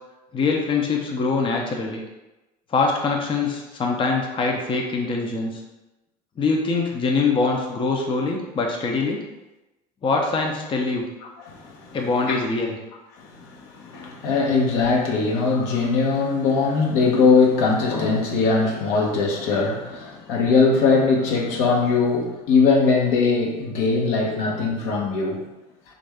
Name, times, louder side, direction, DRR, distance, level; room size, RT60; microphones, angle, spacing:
voice 1, 0.3-2.0 2.7-5.6 6.4-9.2 10.0-11.0 11.9-12.8, left 4 dB, 25° left, 0 dB, 0.5 m, -23 dB
voice 2, 11.4-12.0 12.3-12.4 13.2-25.4, left 4 dB, 65° left, 0 dB, 0.8 m, -21 dB
3.4 x 2.5 x 3.3 m, 1.0 s
hypercardioid pair, 70°, 21 cm